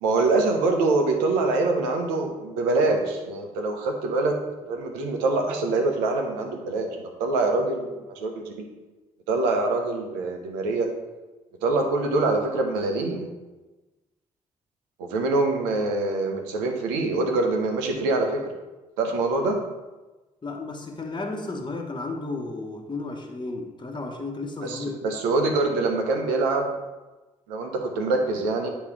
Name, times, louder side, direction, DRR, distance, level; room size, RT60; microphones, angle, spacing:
voice 1, 0.0-4.4 4.7-6.9 7.2-8.3 8.6-8.7 9.3-10.9 11.6-13.3 15.0-18.5 19.0-19.6 24.6-26.7 27.5-28.7, right 3 dB, 80° right, 3 dB, 0.9 m, -24 dB
voice 2, 20.4-25.0, left 3 dB, 25° left, 1 dB, 1.1 m, -33 dB
8.5 x 3.0 x 4.8 m, 1.1 s
hypercardioid pair, 45°, 17 cm